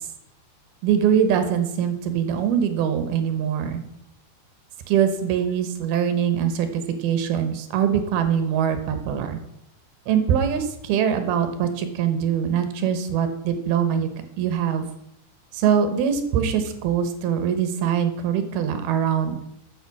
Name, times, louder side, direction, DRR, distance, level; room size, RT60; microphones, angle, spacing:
voice 1, 0.8-3.8 4.9-9.4 10.1-14.1 14.4-14.9 15.5-19.4, right 8 dB, 70° right, 8 dB, 3.0 m, -23 dB
13.0 x 7.0 x 6.0 m, 0.80 s
omnidirectional pair, 4.8 m